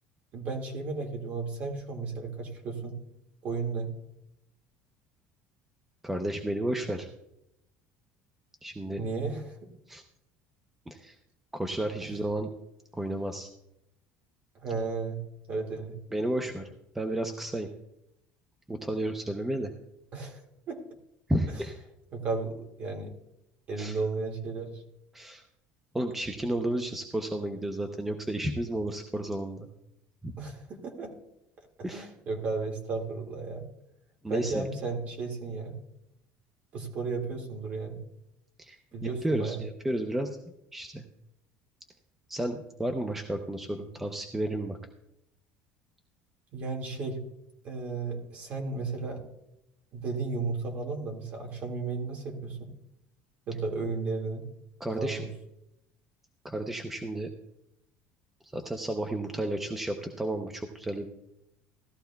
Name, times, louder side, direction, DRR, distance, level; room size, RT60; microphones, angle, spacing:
voice 1, 0.3-3.0 3.4-3.9 9.0-9.7 14.5-15.2 15.5-16.0 20.1-20.4 20.7-20.8 21.5-21.6 22.1-23.1 23.7-24.8 30.4-31.1 31.8-33.7 34.3-35.8 36.7-38.0 38.9-39.6 46.5-47.2 47.6-49.2 49.9-52.7 53.5-54.5 54.9-55.3, right 4 dB, 40° right, 3 dB, 2.0 m, -34 dB
voice 2, 6.0-7.1 8.6-9.0 9.9-10.0 10.9-11.2 11.5-12.5 12.9-13.5 16.1-16.7 16.9-17.7 18.7-19.7 21.3-21.7 23.8-24.0 25.1-25.4 25.9-29.7 30.2-30.3 31.8-32.1 34.2-34.7 38.6-40.4 40.7-41.0 42.3-44.8 54.8-55.3 56.4-57.3 58.4-61.1, right 1 dB, 5° right, 5 dB, 0.6 m, -32 dB
16.5 x 13.0 x 2.3 m, 0.85 s
cardioid pair, 165°, 4 cm